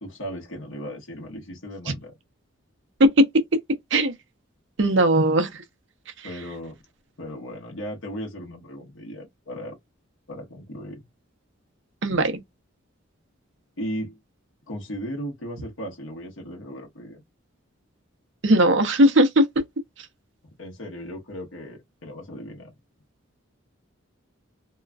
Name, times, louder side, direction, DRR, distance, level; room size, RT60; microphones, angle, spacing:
voice 1, 0.0-2.1 6.2-6.8 7.2-9.8 10.3-11.0 13.8-14.2 14.7-17.2 20.6-22.7, equal, 70° left, 1.0 m, -36 dB
voice 2, 4.8-5.6 12.0-12.4 18.4-19.5, right 1 dB, 60° right, 0.7 m, -18 dB
2.9 x 2.4 x 2.3 m
head